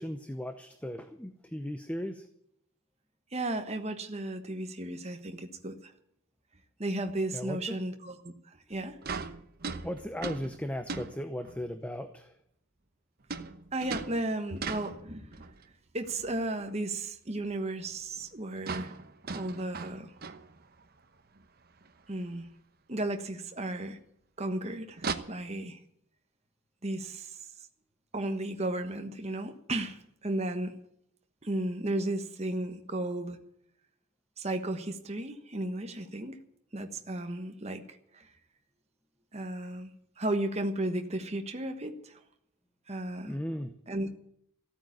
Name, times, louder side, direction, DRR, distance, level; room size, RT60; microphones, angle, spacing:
voice 1, 0.0-2.3 7.3-7.8 9.8-12.3 43.2-43.7, equal, 5° left, 8 dB, 0.7 m, -37 dB
voice 2, 3.3-5.9 6.8-9.0 13.7-15.3 15.9-18.9 19.3-20.1 22.1-22.5 22.9-24.0 24.4-25.8 26.8-27.4 28.1-30.7 31.4-33.4 34.4-36.4 36.7-38.3 39.3-42.2 42.9-43.3 43.9-44.1, right 1 dB, 30° right, 6 dB, 1.3 m, -34 dB
sound 1, 8.7-8.8 9.0-11.7 13.3-15.6 16.0-16.8 17.0-17.1 17.5-17.6 17.9-18.0 18.2-18.3 18.6-21.0 21.4-21.5 21.8-21.9 23.0-23.1 25.0-25.1, right 4 dB, 45° right, 1.0 m, -39 dB
14.5 x 9.0 x 9.5 m, 0.74 s
head